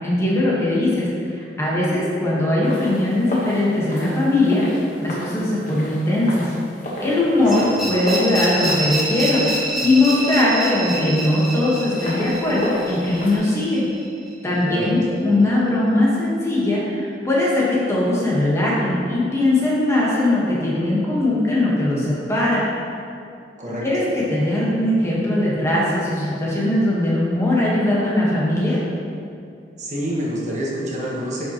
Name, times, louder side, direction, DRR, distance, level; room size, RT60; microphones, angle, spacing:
voice 1, 0.0-4.6 5.0-6.5 7.0-13.9 14.4-22.6 23.8-28.8, left 1 dB, 15° left, -6 dB, 1.4 m, -20 dB
sound 1, 2.6-13.4, equal, 45° left, 1.3 m, -33 dB
sound 2, 7.5-14.3, right 1 dB, ahead, 1.2 m, -27 dB
voice 2, 29.8-31.5, equal, 45° right, -5 dB, 1.2 m, -27 dB
10.0 x 5.3 x 3.0 m, 2.5 s
head